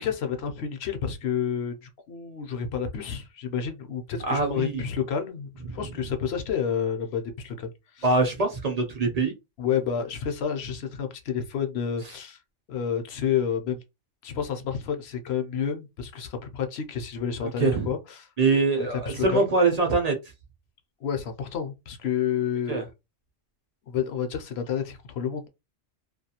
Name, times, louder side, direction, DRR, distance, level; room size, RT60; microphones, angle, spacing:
voice 1, 0.0-8.0 9.6-12.4 12.7-13.8 14.2-18.3 18.7-19.5 21.0-22.9 23.9-25.4, left 7 dB, 65° left, 0.8 m, -30 dB
voice 2, 4.3-4.8 8.0-9.3 17.4-17.9 18.4-20.1 22.7-22.8, right 3 dB, 45° right, 0.5 m, -23 dB
2.4 x 2.3 x 2.8 m
omnidirectional pair, 1.3 m